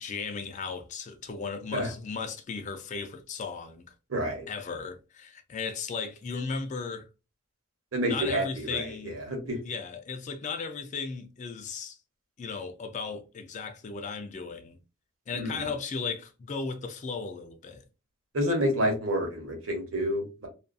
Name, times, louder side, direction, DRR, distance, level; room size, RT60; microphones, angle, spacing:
voice 1, 0.0-3.9 4.5-7.1 8.0-9.2 9.6-12.0 12.4-14.8 15.3-17.8, left 5 dB, 35° left, 0.3 m, -36 dB
voice 2, 4.1-4.5 7.9-9.6 15.3-15.7 18.3-20.5, equal, 75° right, 1.0 m, -29 dB
2.5 x 2.4 x 2.3 m
head